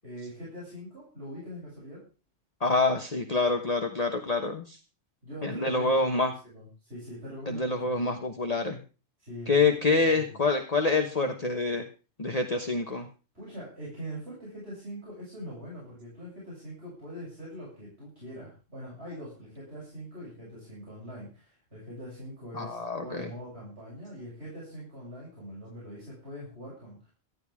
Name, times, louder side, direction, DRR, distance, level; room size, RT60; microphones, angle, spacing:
voice 1, 0.0-2.0 5.2-6.2 6.4-7.9 9.2-10.4 13.3-27.1, equal, 55° right, -7 dB, 8.3 m, -43 dB
voice 2, 2.6-4.8 5.4-6.3 7.5-8.8 9.5-11.8 12.2-13.1 22.5-23.3, left 3 dB, 30° left, 4 dB, 1.3 m, -26 dB
18.5 x 13.5 x 3.6 m, 0.35 s
omnidirectional pair, 1.3 m